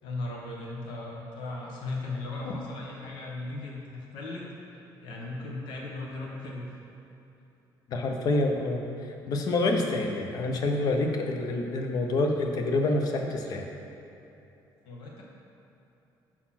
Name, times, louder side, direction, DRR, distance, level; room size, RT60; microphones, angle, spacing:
voice 1, 0.0-4.5 5.0-6.7 14.8-15.2, left 2 dB, 90° left, -2 dB, 1.0 m, -37 dB
voice 2, 7.9-8.8 9.3-13.6, left 2 dB, 50° left, 3 dB, 0.7 m, -27 dB
6.0 x 4.1 x 5.8 m, 3.0 s
cardioid pair, 160°, 8 cm